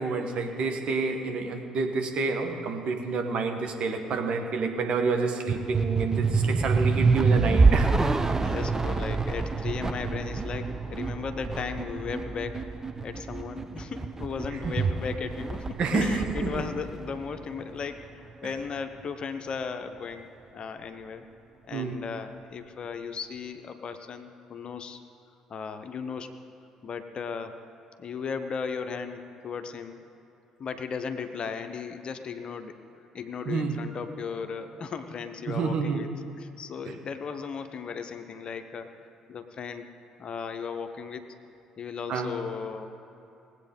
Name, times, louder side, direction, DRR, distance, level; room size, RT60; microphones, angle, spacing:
voice 1, 0.0-7.9 15.8-16.5 21.7-22.0 33.5-33.8 35.5-36.0 36.8-36.9 42.1-42.3, right 4 dB, 50° right, 4 dB, 1.4 m, -28 dB
sound 1, 5.5-18.0, right 4 dB, 20° right, 0.7 m, -27 dB
voice 2, 8.4-12.7 13.0-20.3 20.5-21.2 21.7-25.0 25.5-26.4 26.8-27.6 28.0-30.0 30.6-32.8 33.1-36.1 36.4-38.9 39.3-39.9 40.2-41.4 41.8-42.9, left 6 dB, 40° left, 8 dB, 0.9 m, -36 dB
19.5 x 8.3 x 5.3 m, 2.8 s
figure-of-eight pair, 50°, 2 cm